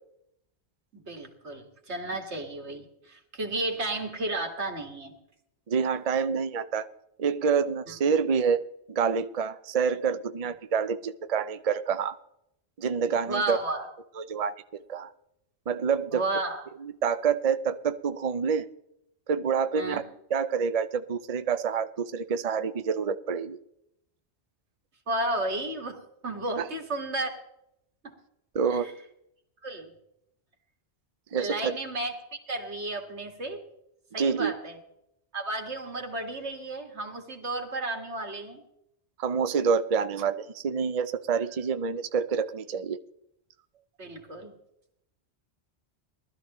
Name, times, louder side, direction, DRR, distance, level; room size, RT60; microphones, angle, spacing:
voice 1, 0.9-5.1 13.3-13.9 16.1-16.6 19.8-20.0 25.1-27.3 28.0-28.1 28.7-28.9 29.6-29.9 31.4-33.7 34.1-34.8 35.3-38.6 44.0-44.5, right 2 dB, 80° right, 3 dB, 2.3 m, -33 dB
voice 2, 5.7-6.9 7.2-8.6 8.9-12.2 12.8-13.6 14.2-14.5 14.9-15.1 15.7-16.2 16.8-18.7 19.3-20.0 20.3-23.6 26.6-26.7 28.5-28.9 31.3-31.7 34.2-34.5 39.2-43.0, right 6 dB, 45° right, 10 dB, 0.6 m, -27 dB
20.0 x 13.0 x 3.0 m, 0.78 s
omnidirectional pair, 1.1 m